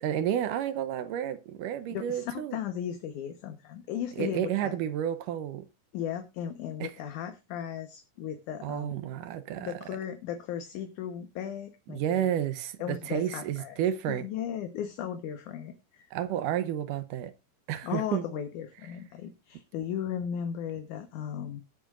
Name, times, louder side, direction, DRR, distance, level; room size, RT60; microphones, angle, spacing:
voice 1, 0.0-2.6 4.2-5.7 6.8-6.9 8.6-9.7 11.9-14.3 16.1-17.3 17.7-18.2, right 10 dB, 75° right, 2.4 m, -31 dB
voice 2, 1.9-4.7 5.9-8.9 9.6-12.3 12.8-13.8 14.1-16.1 17.8-21.6, left 9 dB, 70° left, 2.5 m, -36 dB
19.0 x 8.0 x 2.5 m
omnidirectional pair, 4.0 m